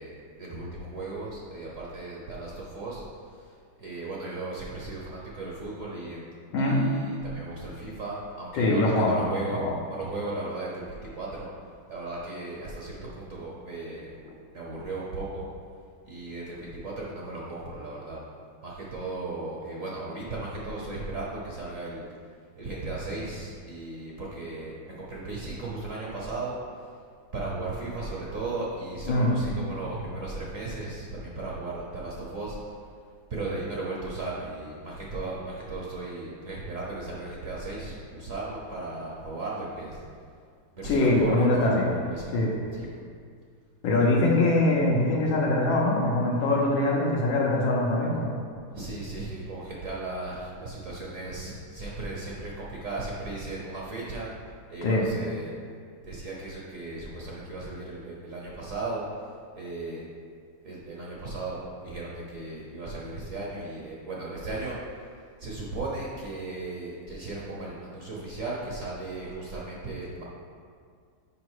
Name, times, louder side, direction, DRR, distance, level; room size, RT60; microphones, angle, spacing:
voice 1, 0.0-6.2 6.6-11.5 11.9-14.1 14.5-15.5 16.0-18.3 18.6-22.0 22.6-26.9 27.3-32.6 33.3-40.0 40.7-42.9 48.7-54.3 54.7-55.5 56.0-60.1 60.6-65.0 65.4-70.2, right 2 dB, 50° right, -4 dB, 1.1 m, -36 dB
voice 2, 6.5-6.8 8.5-9.2 9.5-9.7 29.1-29.3 40.8-41.9 42.3-42.5 43.8-48.2 54.8-55.0, left 2 dB, 80° left, -3 dB, 1.7 m, -23 dB
6.4 x 5.0 x 4.8 m, 2.2 s
omnidirectional pair, 2.1 m